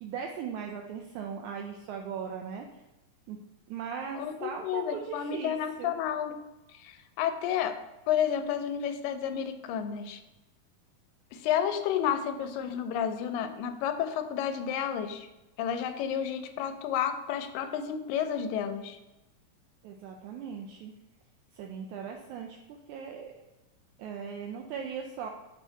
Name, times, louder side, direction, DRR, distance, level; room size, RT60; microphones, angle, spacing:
voice 1, 0.0-2.7 3.3-3.4 3.7-6.0 19.8-20.9 21.5-23.3 24.0-25.3, right 7 dB, 85° right, 2 dB, 1.7 m, -39 dB
voice 2, 4.2-6.3 6.8-7.8 8.1-10.2 11.3-15.3 15.6-19.0, left 9 dB, 85° left, 8 dB, 2.2 m, -31 dB
6.6 x 3.7 x 4.4 m, 1.0 s
omnidirectional pair, 3.9 m